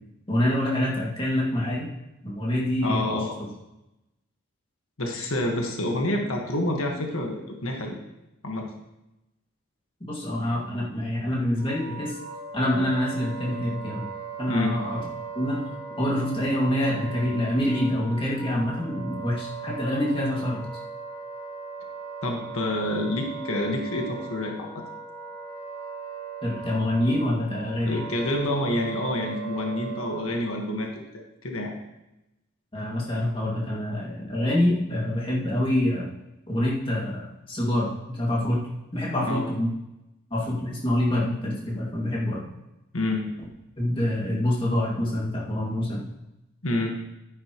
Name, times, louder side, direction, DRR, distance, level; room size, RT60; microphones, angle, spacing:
voice 1, 0.3-1.9 2.2-3.1 10.1-12.2 12.5-14.1 14.4-15.0 15.3-15.6 16.0-20.6 26.4-28.0 32.7-36.1 36.5-38.6 38.9-39.7 40.3-42.4 43.8-46.1, left 1 dB, 25° left, -4 dB, 2.3 m, -26 dB
voice 2, 2.8-3.4 5.0-8.0 8.4-8.7 14.5-14.8 22.2-24.8 27.8-31.7 39.3-39.5 42.9-43.3 46.6-47.0, left 1 dB, 85° left, 1 dB, 1.6 m, -28 dB
Wind instrument woodwind instrument, 11.5-30.6, right 5 dB, 40° right, 3.1 m, -38 dB
11.5 x 9.9 x 3.1 m, 0.92 s
head